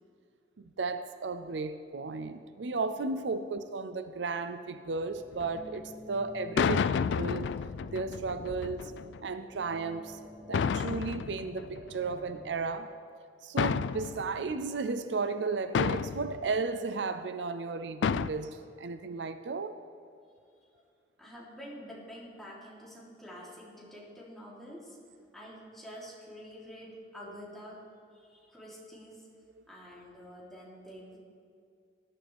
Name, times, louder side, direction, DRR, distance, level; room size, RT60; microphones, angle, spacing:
voice 1, 0.6-7.5 7.9-8.9 9.2-13.0 13.4-19.8, right 4 dB, 80° right, 11 dB, 0.6 m, -34 dB
sound 1, 4.8-12.5, equal, 50° left, 2.7 m, -51 dB
sound 2, 5.3-5.6 6.6-9.2 10.5-12.3 13.6-14.5 15.7-16.4 18.0-18.3, left 6 dB, 75° left, 0.3 m, -31 dB
voice 2, 21.2-25.0 25.3-27.8 28.1-29.3 29.7-31.2, equal, ahead, -7 dB, 3.4 m, -47 dB
19.0 x 11.5 x 3.5 m, 2.3 s
head